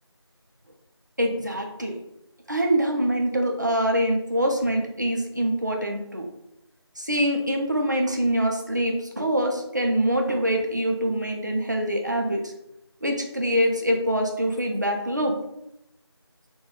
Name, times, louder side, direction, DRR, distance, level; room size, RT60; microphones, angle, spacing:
voice 1, 1.2-2.0 2.5-6.3 7.0-12.5 13.0-15.4, equal, 40° right, 2 dB, 0.4 m, -24 dB
2.2 x 2.2 x 3.1 m, 0.83 s
figure-of-eight pair, 170°, 15 cm